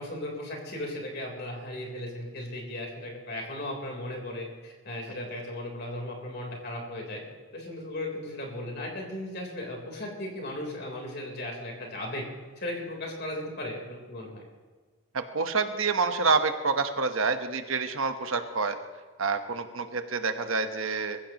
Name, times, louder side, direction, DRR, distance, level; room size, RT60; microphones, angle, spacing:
voice 1, 0.0-7.2 7.5-12.2 12.6-14.4, left 1 dB, 45° left, 0 dB, 3.9 m, -36 dB
voice 2, 15.1-18.8 19.2-21.2, right 4 dB, 65° right, 7 dB, 1.2 m, -27 dB
22.5 x 15.5 x 3.0 m, 1.5 s
head